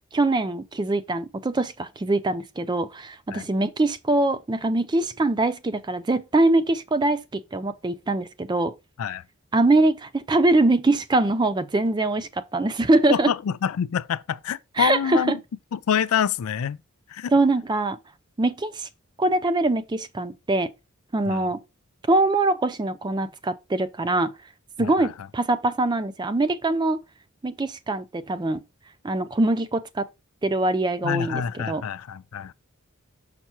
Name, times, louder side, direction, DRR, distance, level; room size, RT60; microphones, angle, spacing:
voice 1, 0.1-8.7 9.5-13.3 14.8-15.4 17.3-18.0 18.4-18.9 19.2-20.7 21.1-21.6 22.1-24.3 24.8-27.0 27.4-28.6 29.0-30.1 30.4-31.8, right 2 dB, 20° right, 0.4 m, -23 dB
voice 2, 13.1-15.4 15.7-16.8 17.1-17.3 21.3-21.5 24.8-25.1 31.0-32.5, left 8 dB, 80° left, 0.4 m, -27 dB
5.8 x 5.5 x 3.0 m
head